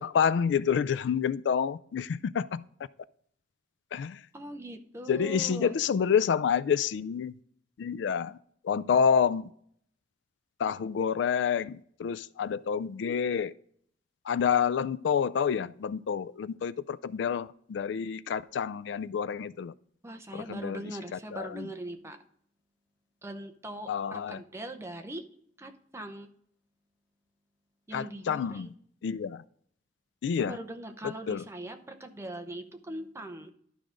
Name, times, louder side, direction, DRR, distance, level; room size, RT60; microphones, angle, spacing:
voice 1, 0.0-2.6 3.9-4.2 5.1-7.3 7.8-8.4 8.6-9.5 10.6-13.5 14.3-19.7 20.3-20.8 21.1-21.7 23.9-24.4 27.9-28.7 29.0-29.4 30.2-30.6 31.3-31.4, left 7 dB, 70° left, 0.3 m, -28 dB
voice 2, 4.3-5.8 20.0-22.2 23.2-25.2 25.6-26.3 27.9-28.7 30.3-33.5, right 1 dB, 15° right, 0.7 m, -41 dB
12.0 x 4.9 x 3.8 m
head